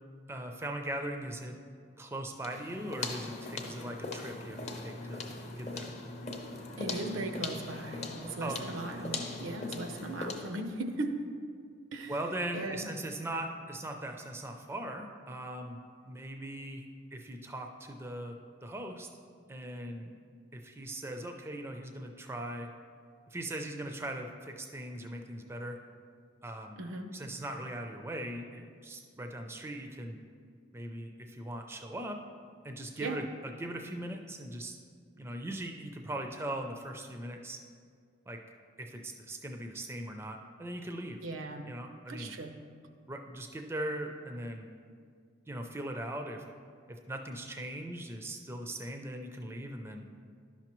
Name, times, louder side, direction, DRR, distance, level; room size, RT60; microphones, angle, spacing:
voice 1, 0.3-1.5 2.0-5.3 5.6-5.9 8.4-8.8 12.1-15.8 16.0-18.4 18.6-19.1 19.5-20.1 20.5-22.7 23.3-25.8 26.4-26.8 27.1-30.2 30.7-32.2 32.6-33.2 33.6-34.8 35.2-37.6 38.3-38.4 38.8-41.2 41.7-42.3 43.1-44.7 45.5-46.4 46.9-50.0, right 1 dB, 15° right, 4 dB, 0.4 m, -40 dB
sound 1, 2.4-10.6, left 3 dB, 35° left, 0.6 m, -40 dB
voice 2, 6.8-11.2 11.9-12.2 12.5-12.9 26.8-27.1 33.0-33.2 41.2-41.7 42.1-42.6, right 2 dB, 85° right, 6 dB, 0.6 m, -38 dB
11.5 x 5.9 x 3.0 m, 2.1 s
head